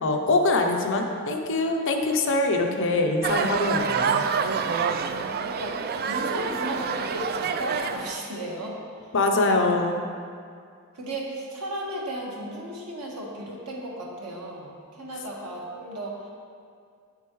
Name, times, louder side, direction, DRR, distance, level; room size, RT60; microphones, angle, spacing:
voice 1, 0.0-4.3 9.1-10.0, left 2 dB, 60° left, 3 dB, 0.7 m, -23 dB
sound 1, 3.2-8.2, right 6 dB, 45° right, 0.3 m, -27 dB
voice 2, 4.9-9.1 9.4-9.6 10.9-16.3, right 1 dB, 85° right, -3 dB, 1.5 m, -35 dB
8.6 x 7.3 x 3.1 m, 2.2 s
head